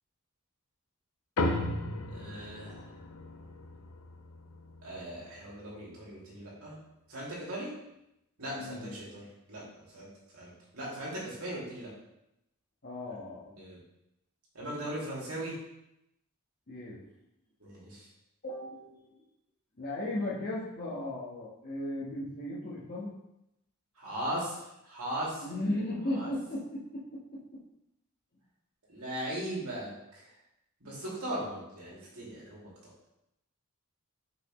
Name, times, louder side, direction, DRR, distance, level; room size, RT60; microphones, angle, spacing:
sound 1, 1.4-6.1, left 2 dB, 65° left, 0.7 m, -36 dB
voice 1, 2.1-2.9 4.8-6.8 7.1-7.8 8.4-10.1 10.3-11.9 13.6-13.8 14.5-15.5 17.6-18.1 24.0-25.5 26.1-26.3 28.9-30.3 30.8-32.7, right 1 dB, 75° right, -6 dB, 2.4 m, -38 dB
voice 2, 8.5-9.0 12.8-13.5 16.7-17.0 18.4-19.1 19.8-23.1 25.4-27.0, left 1 dB, 45° left, -8 dB, 1.2 m, -36 dB
5.8 x 5.5 x 3.1 m, 0.85 s
head